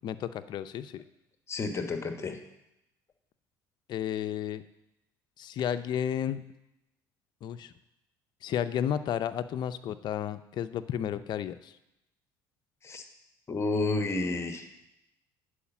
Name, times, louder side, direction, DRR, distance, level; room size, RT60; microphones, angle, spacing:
voice 1, 0.0-1.0 3.9-4.6 5.4-6.4 7.4-7.7 8.4-11.8, left 9 dB, 55° left, 12 dB, 0.5 m, -32 dB
voice 2, 1.5-2.4 12.8-13.0 13.5-14.7, left 3 dB, 30° left, 6 dB, 1.1 m, -30 dB
8.5 x 4.9 x 7.1 m, 0.87 s
supercardioid pair, 95°, 9 cm